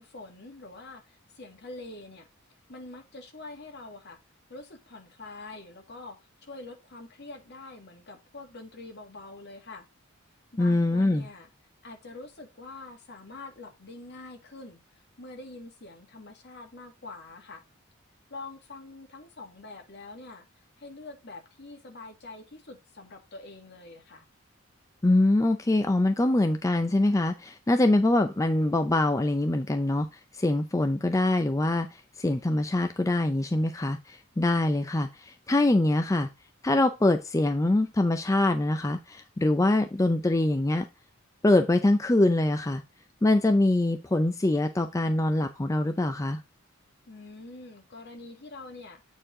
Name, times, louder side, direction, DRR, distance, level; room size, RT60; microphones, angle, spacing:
voice 1, 0.0-2.3 2.7-4.2 4.5-9.9 10.5-11.5 11.8-14.8 15.2-17.6 18.3-24.3 47.1-49.0, left 2 dB, 55° left, 1.9 m, -45 dB
voice 2, 10.6-11.3 25.0-30.1 30.3-36.3 36.6-40.9 41.4-42.8 43.2-46.4, left 2 dB, 15° left, 0.5 m, -24 dB
8.3 x 4.5 x 3.7 m
head